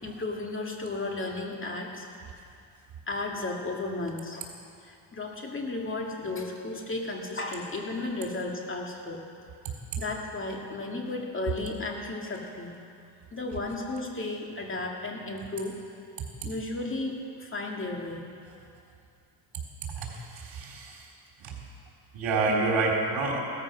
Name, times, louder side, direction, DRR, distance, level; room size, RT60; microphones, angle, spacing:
voice 1, 0.0-2.1 3.1-4.5 4.8-9.2 10.0-12.7 13.3-15.8 16.4-18.2, left 2 dB, 25° left, 0 dB, 2.3 m, -34 dB
voice 2, 20.0-21.0 21.4-21.5 22.1-23.4, right 3 dB, 70° right, -2 dB, 4.0 m, -28 dB
16.5 x 13.5 x 6.3 m, 2.4 s
cardioid pair, 125°, 46 cm